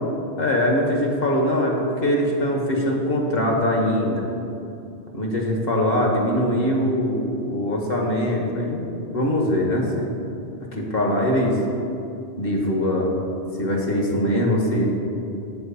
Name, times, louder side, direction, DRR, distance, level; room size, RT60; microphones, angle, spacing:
voice 1, 0.4-4.2 5.1-10.1 10.7-11.6 12.4-13.1 13.6-14.9, left 1 dB, 55° left, 0 dB, 1.4 m, -22 dB
7.0 x 4.5 x 6.9 m, 2.6 s
omnidirectional pair, 1.2 m